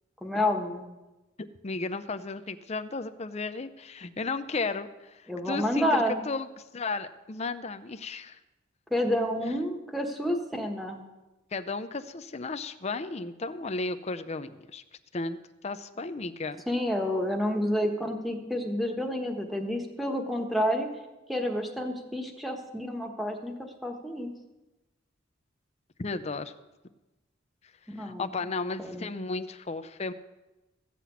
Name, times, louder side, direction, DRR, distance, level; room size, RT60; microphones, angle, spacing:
voice 1, 0.2-0.9 5.3-6.2 8.9-11.1 16.7-20.9 21.3-23.5 23.8-24.3 27.9-28.3 28.8-29.1, left 1 dB, ahead, 1 dB, 1.3 m, -29 dB
voice 2, 1.6-8.4 11.5-14.8 15.1-15.4 15.6-16.6 26.0-26.5 28.0-30.1, left 3 dB, 35° left, 10 dB, 0.6 m, -34 dB
15.0 x 5.9 x 8.4 m, 1.1 s
head